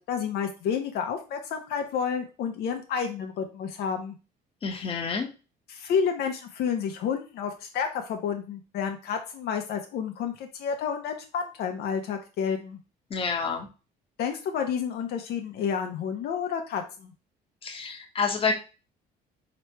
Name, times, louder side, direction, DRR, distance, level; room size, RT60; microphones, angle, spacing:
voice 1, 0.0-4.2 5.7-12.8 14.2-17.1, left 7 dB, 70° left, 4 dB, 0.7 m, -30 dB
voice 2, 4.6-5.3 13.1-13.7 17.6-18.5, left 5 dB, 35° left, 3 dB, 1.0 m, -28 dB
3.2 x 3.0 x 4.4 m, 0.32 s
cardioid pair, 110°, 17 cm